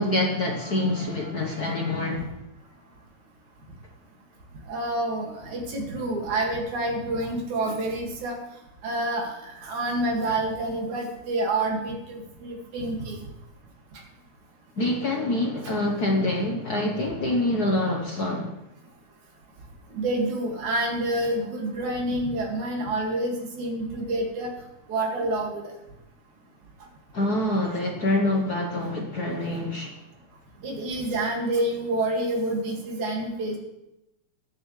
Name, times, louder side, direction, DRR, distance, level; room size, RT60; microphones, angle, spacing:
voice 1, 0.0-2.2 14.8-18.6 27.1-30.0, left 1 dB, 60° left, 1 dB, 1.0 m, -26 dB
voice 2, 1.0-2.3 4.7-8.4 8.8-13.2 19.9-24.5 24.9-25.7 30.6-33.6, right 1 dB, 80° right, 0 dB, 3.6 m, -28 dB
21.5 x 8.9 x 3.3 m, 0.92 s
omnidirectional pair, 3.4 m